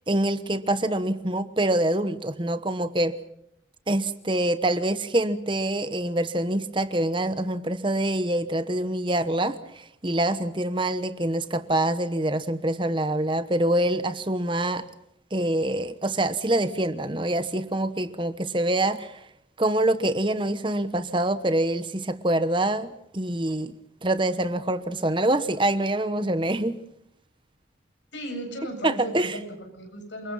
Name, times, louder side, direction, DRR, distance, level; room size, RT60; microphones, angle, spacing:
voice 1, 0.1-3.2 3.9-14.8 15.3-19.2 19.6-23.7 24.0-26.8 28.8-29.4, right 1 dB, 25° right, 1.1 m, -25 dB
voice 2, 28.1-30.3, equal, 75° left, 7.8 m, -35 dB
28.0 x 24.5 x 5.6 m
head